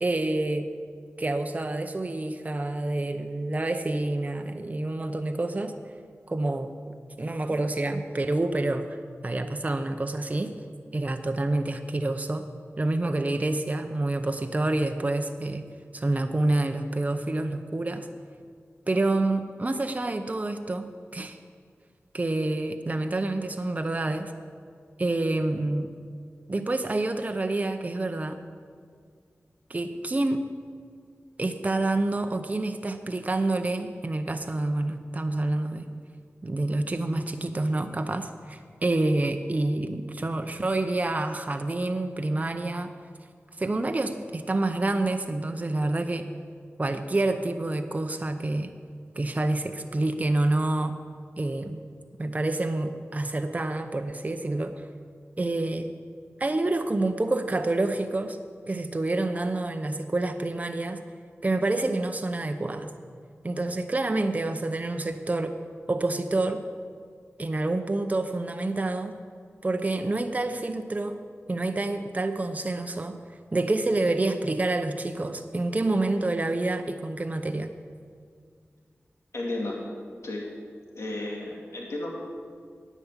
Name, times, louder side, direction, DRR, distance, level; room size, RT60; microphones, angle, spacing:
voice 1, 0.0-0.7 1.2-5.8 6.3-6.7 7.2-9.0 9.2-10.5 10.9-12.5 12.8-15.7 15.9-18.1 18.9-21.4 22.1-24.3 25.0-25.9 26.5-28.4 29.7-30.5 31.4-35.9 36.4-42.9 43.6-46.3 46.8-48.7 49.2-51.0 51.4-51.8 52.2-54.8 55.4-55.9 56.4-58.4 58.7-61.0 61.4-62.9 63.4-65.6 65.9-66.6 67.4-69.2 69.6-71.2 71.5-73.2 73.5-77.7, right 2 dB, 30° right, 6 dB, 0.7 m, -28 dB
voice 2, 79.3-79.9 80.2-80.5 80.9-82.2, left 2 dB, 75° left, -2 dB, 2.2 m, -33 dB
10.5 x 8.3 x 7.3 m, 2.1 s
wide cardioid pair, 70°, 5 cm